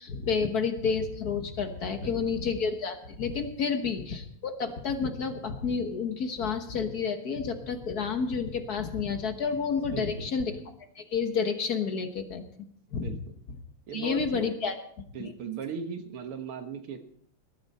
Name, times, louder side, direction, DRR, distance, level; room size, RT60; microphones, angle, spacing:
voice 1, 0.0-10.6 10.9-12.4 12.9-13.2 13.9-15.3, left 5 dB, 50° left, 7 dB, 1.6 m, -30 dB
voice 2, 1.9-2.4 3.7-3.9 9.9-10.3 13.0-13.4 13.9-14.4 15.1-17.0, right 6 dB, 80° right, 7 dB, 2.2 m, -38 dB
19.0 x 13.0 x 4.3 m, 0.63 s
omnidirectional pair, 2.4 m